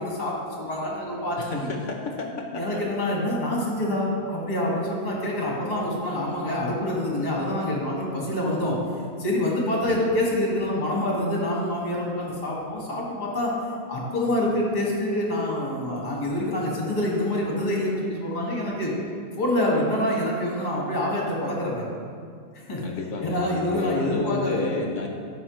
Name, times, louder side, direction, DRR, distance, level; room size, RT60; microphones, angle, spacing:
voice 1, 0.0-1.7 2.5-8.8 9.2-13.5 13.9-18.9 19.4-21.9 22.7-22.8 23.2-24.8, left 1 dB, 30° left, -3 dB, 1.7 m, -26 dB
voice 2, 1.4-2.8 9.8-10.0 22.8-25.1, left 4 dB, 60° left, 2 dB, 0.9 m, -32 dB
12.0 x 5.6 x 3.1 m, 2.2 s
omnidirectional pair, 1.7 m